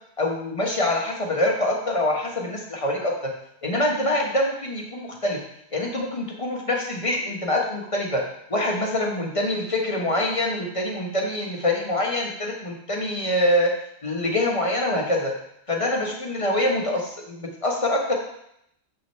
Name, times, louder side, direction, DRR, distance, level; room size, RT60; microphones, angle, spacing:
voice 1, 0.2-3.1 3.6-5.4 5.7-8.2 8.5-13.7 14.0-15.3 15.7-18.1, left 1 dB, 25° left, -1 dB, 1.4 m, -25 dB
7.2 x 6.1 x 4.5 m, 0.75 s
omnidirectional pair, 1.5 m